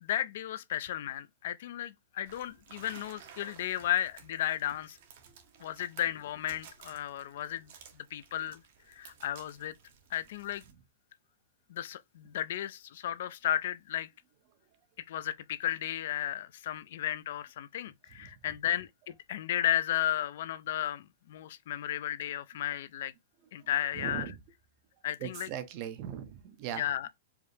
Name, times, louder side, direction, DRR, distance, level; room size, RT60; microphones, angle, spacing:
voice 1, 0.0-5.0 5.6-7.7 8.1-8.6 8.9-9.7 10.1-10.6 11.7-14.1 15.1-23.1 23.5-24.2 25.0-25.5 26.8-27.1, left 12 dB, 65° left, 0.4 m, -34 dB
sound 1, 2.2-10.7, right 7 dB, 60° right, 1.1 m, -55 dB
voice 2, 23.6-24.4 25.2-26.8, right 9 dB, 40° right, 0.6 m, -40 dB
4.8 x 2.0 x 3.2 m
supercardioid pair, 155°, 0 cm